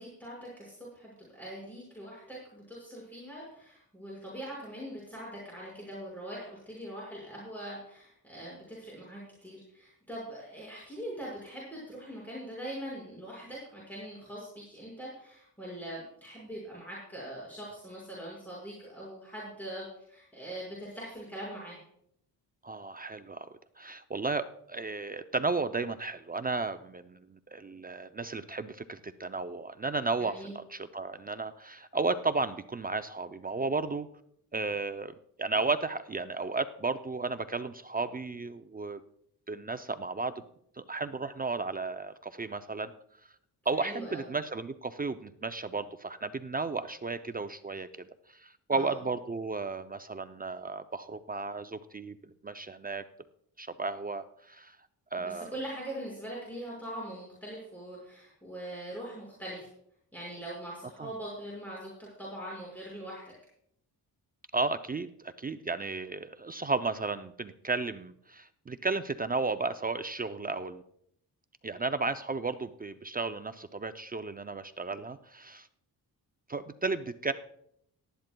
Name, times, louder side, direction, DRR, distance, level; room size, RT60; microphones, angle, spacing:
voice 1, 0.0-21.8 30.2-30.5 43.8-44.2 48.7-49.0 55.2-59.7 60.1-61.9 62.2-63.2, right 1 dB, 5° left, -5 dB, 5.1 m, -42 dB
voice 2, 22.6-23.5 23.8-34.1 34.5-39.0 39.5-40.4 40.8-42.9 43.7-53.0 53.6-54.8 55.1-55.5 61.0-61.1 64.5-70.8 71.6-75.7 76.5-77.3, right 3 dB, 25° right, 10 dB, 0.4 m, -34 dB
18.0 x 12.5 x 2.2 m, 0.71 s
cardioid pair, 110°, 39 cm